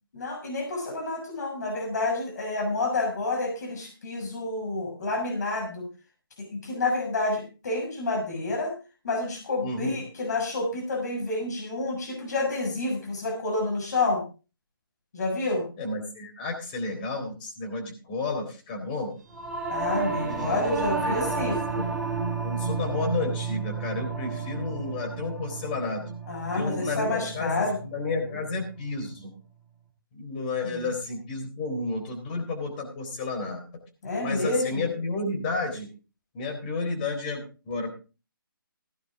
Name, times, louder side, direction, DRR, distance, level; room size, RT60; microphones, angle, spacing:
voice 1, 0.1-5.9 6.4-8.7 9.0-14.2 15.1-15.6 19.7-21.8 26.3-27.8 30.6-30.9 34.0-34.9, left 2 dB, 50° left, 3 dB, 6.4 m, -29 dB
voice 2, 9.6-9.9 15.8-19.1 21.0-21.3 21.7-21.9 22.4-26.0 26.5-29.3 30.1-33.6 34.2-35.9 36.3-37.9, left 3 dB, 25° left, 5 dB, 3.8 m, -31 dB
Singing / Musical instrument, 19.3-28.9, right 4 dB, ahead, 2.3 m, -32 dB
16.5 x 10.5 x 3.7 m, 0.34 s
hypercardioid pair, 160°, 12 cm